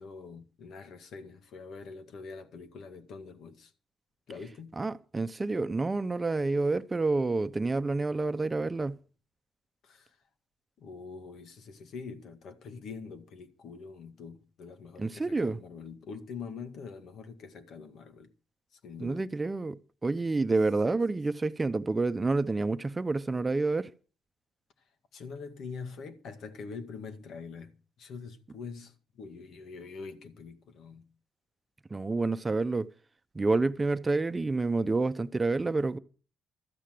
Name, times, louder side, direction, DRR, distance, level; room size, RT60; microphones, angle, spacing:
voice 1, 0.0-3.7 4.3-4.8 9.8-10.2 10.8-18.3 18.7-19.3 20.9-21.0 25.1-31.1, left 5 dB, 70° left, 1.9 m, -44 dB
voice 2, 4.8-9.0 15.0-15.6 19.0-23.9 31.9-32.9 33.3-36.0, right 3 dB, 25° right, 0.9 m, -28 dB
13.5 x 8.2 x 7.8 m
cardioid pair, 90°, 0 cm